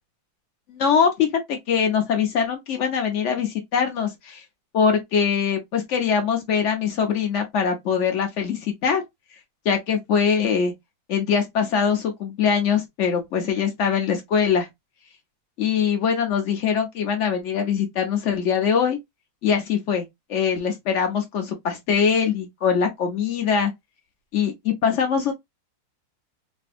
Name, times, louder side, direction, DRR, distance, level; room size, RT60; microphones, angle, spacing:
voice 1, 0.7-4.4 4.7-9.0 9.6-10.7 11.1-14.7 15.6-19.0 19.4-20.0 20.3-23.7 24.3-25.3, left 7 dB, 80° left, 0.6 m, -22 dB
3.3 x 2.6 x 2.4 m
omnidirectional pair, 2.1 m